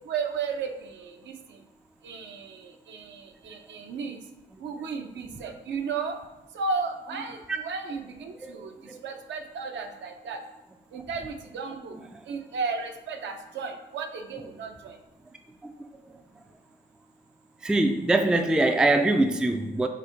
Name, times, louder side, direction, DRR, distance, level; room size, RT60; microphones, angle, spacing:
voice 1, 0.0-1.3 2.0-4.2 4.6-6.2 6.5-8.7 9.0-10.4 10.9-12.0 12.3-15.0, right 5 dB, 65° right, 5 dB, 0.6 m, -34 dB
voice 2, 17.6-19.9, right 2 dB, 5° right, 5 dB, 0.3 m, -23 dB
4.0 x 2.7 x 4.4 m, 1.0 s
cardioid pair, 90°, 20 cm